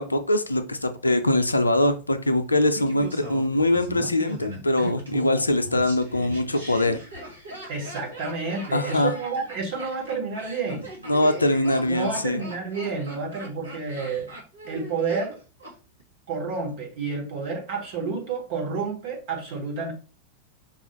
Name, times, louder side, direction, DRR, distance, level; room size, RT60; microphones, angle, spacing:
voice 1, 0.0-7.0 8.7-9.1 11.1-12.4, left 1 dB, 80° left, 0.4 m, -23 dB
Laughter, 2.7-15.7 16.0-16.1, right 1 dB, 80° right, 1.3 m, -39 dB
voice 2, 7.7-10.9 11.5-14.3 14.7-15.4 16.3-19.9, right 4 dB, 50° right, 1.4 m, -30 dB
5.3 x 2.4 x 3.0 m
figure-of-eight pair, 90°, 0 cm